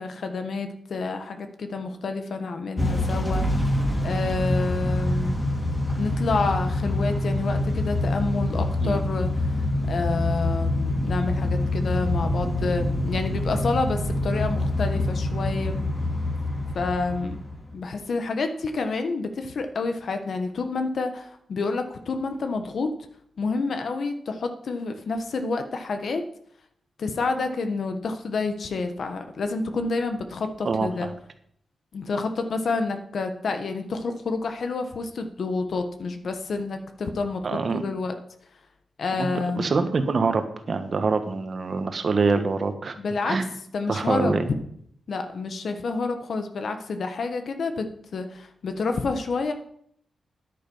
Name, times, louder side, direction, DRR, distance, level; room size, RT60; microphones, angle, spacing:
voice 1, 0.0-3.7 4.0-5.4 6.0-15.8 16.7-17.4 17.7-22.9 23.4-26.2 27.0-31.1 31.9-38.1 39.0-39.6 43.0-43.4 43.7-44.4 45.1-47.9 48.1-49.5, left 4 dB, 65° left, 7 dB, 1.2 m, -29 dB
Motor vehicle (road) / Engine starting / Accelerating revving vroom, 2.8-17.7, left 1 dB, 10° left, 3.2 m, -26 dB
voice 2, 30.6-31.1 37.4-37.8 39.2-39.3 39.6-42.9 43.2-43.5 43.9-44.5, right 4 dB, 50° right, 8 dB, 1.3 m, -25 dB
10.0 x 9.0 x 5.5 m, 0.67 s
wide cardioid pair, 105°, 0 cm